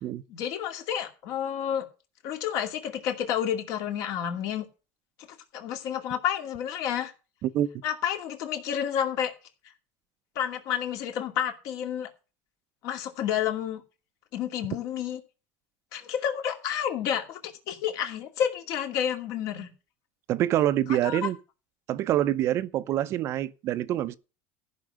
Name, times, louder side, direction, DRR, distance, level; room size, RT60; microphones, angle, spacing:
voice 1, 0.3-1.9 2.2-4.6 5.5-7.1 7.8-9.3 10.4-12.1 12.8-13.8 14.3-15.2 15.9-19.7 20.9-21.3, left 9 dB, 55° left, 2.4 m, -30 dB
voice 2, 20.3-21.4 21.9-24.2, right 12 dB, 45° right, 0.6 m, -26 dB
14.5 x 6.0 x 6.3 m
cardioid pair, 145°, 7 cm